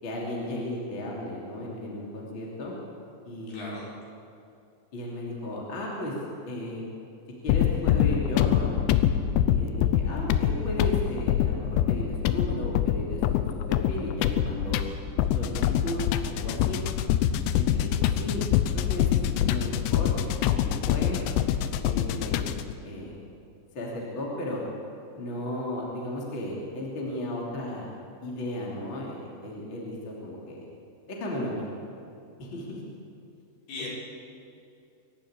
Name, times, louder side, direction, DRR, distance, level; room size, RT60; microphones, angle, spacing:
voice 1, 0.0-2.7 3.2-3.7 4.9-6.1 6.4-6.8 7.4-8.7 9.5-13.4 13.7-14.8 15.3-16.8 17.5-21.2 21.8-22.6 22.8-23.1 23.7-24.6 25.1-27.9 28.2-30.6 31.1-31.7 32.4-32.8, left 1 dB, 30° left, -3 dB, 3.1 m, -35 dB
voice 2, 3.5-3.9 33.7-33.9, left 3 dB, 55° left, -5 dB, 6.2 m, -38 dB
sound 1, 7.5-22.7, left 10 dB, 80° left, 2.7 m, -25 dB
24.5 x 12.0 x 8.9 m, 2.6 s
omnidirectional pair, 5.5 m